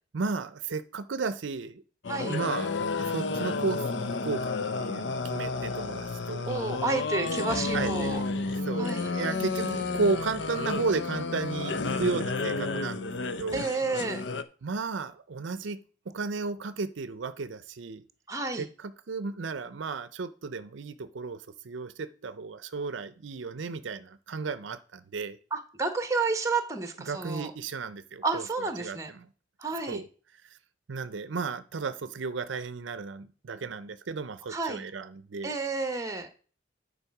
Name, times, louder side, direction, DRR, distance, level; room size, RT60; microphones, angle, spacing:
voice 1, 0.1-1.8 2.2-2.7 3.0-6.5 7.7-13.7 14.6-15.8 16.1-18.0 18.5-25.4 27.1-29.3 29.9-30.1 30.4-30.6 30.9-35.5, right 4 dB, 75° right, 14 dB, 0.5 m, -34 dB
sound 1, 2.0-14.4, left 3 dB, 70° left, 0.6 m, -31 dB
voice 2, 6.5-8.2 8.8-9.1 13.5-14.2 18.3-18.7 25.5-27.5 28.2-29.1 29.6-30.0 34.5-34.8 35.4-36.3, right 3 dB, 15° right, 8 dB, 1.0 m, -30 dB
9.9 x 4.2 x 5.8 m, 0.39 s
head